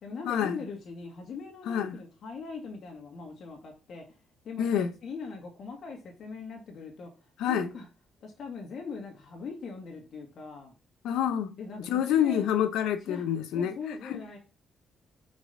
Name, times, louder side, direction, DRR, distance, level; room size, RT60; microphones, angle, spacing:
voice 1, 0.0-4.2 4.4-7.1 7.4-7.9 8.2-10.7 11.6-12.4 13.1-13.2 13.5-14.4, left 5 dB, 60° left, 2.0 m, -40 dB
voice 2, 4.6-4.9 7.4-7.7 11.0-11.5 11.9-13.7 14.1-14.2, left 9 dB, 85° left, 0.8 m, -27 dB
5.3 x 4.9 x 5.4 m
cardioid pair, 90°, 0 cm